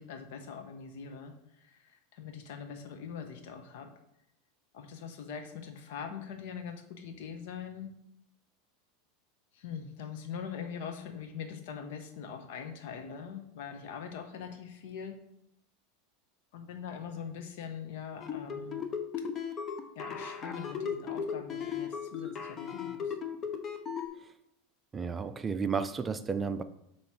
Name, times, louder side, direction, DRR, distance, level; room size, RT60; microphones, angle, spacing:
voice 1, 0.0-3.9 4.7-7.9 9.5-15.2 16.5-18.8 19.9-23.2, left 7 dB, 70° left, 1.0 m, -42 dB
sound 1, 18.2-24.1, left 7 dB, 35° left, 0.9 m, -36 dB
voice 2, 24.9-26.6, right 5 dB, 20° right, 0.4 m, -32 dB
7.4 x 3.2 x 5.7 m
hypercardioid pair, 100°, 0 cm